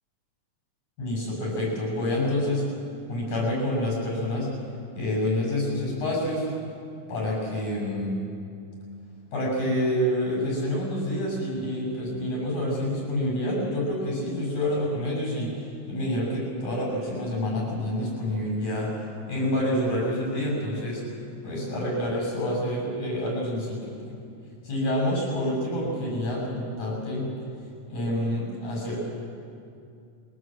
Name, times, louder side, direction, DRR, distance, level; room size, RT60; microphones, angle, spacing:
voice 1, 1.0-2.7 3.1-4.5 5.0-6.5 7.1-8.2 9.3-15.5 15.9-18.9 19.3-24.1 24.6-27.3 27.9-29.1, left 1 dB, 70° left, -3 dB, 8.2 m, -28 dB
22.5 x 17.5 x 7.6 m, 2.4 s
omnidirectional pair, 3.5 m